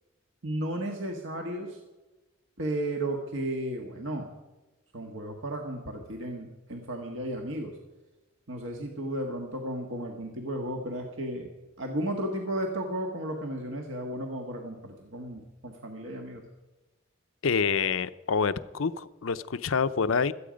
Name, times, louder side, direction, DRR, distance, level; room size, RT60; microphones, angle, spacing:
voice 1, 0.4-1.8 2.6-4.3 4.9-7.8 8.5-11.5 11.8-16.4, right 1 dB, 70° right, 2 dB, 1.6 m, -34 dB
voice 2, 17.4-20.3, left 5 dB, 85° left, 13 dB, 0.6 m, -27 dB
17.5 x 13.0 x 5.2 m, 1.1 s
head